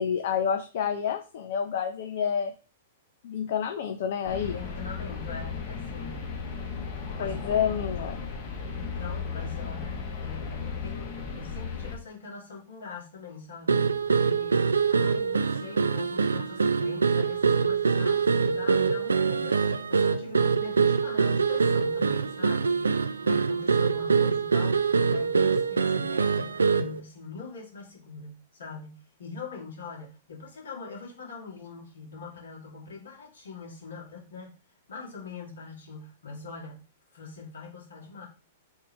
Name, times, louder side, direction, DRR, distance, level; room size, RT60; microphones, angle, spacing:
voice 1, 0.0-2.5 3.2-4.6 7.2-8.2, left 7 dB, 60° left, 5 dB, 0.5 m, -28 dB
sound 1, 4.3-12.0, left 5 dB, 40° left, 1.1 m, -35 dB
voice 2, 4.5-6.3 7.2-7.4 8.7-34.5 34.9-36.8 37.1-38.3, left 5 dB, 75° left, -2 dB, 1.8 m, -43 dB
sound 2, 13.7-27.0, right 5 dB, 90° right, 0.3 m, -24 dB
3.6 x 2.7 x 4.3 m, 0.34 s
hypercardioid pair, 110°, 0 cm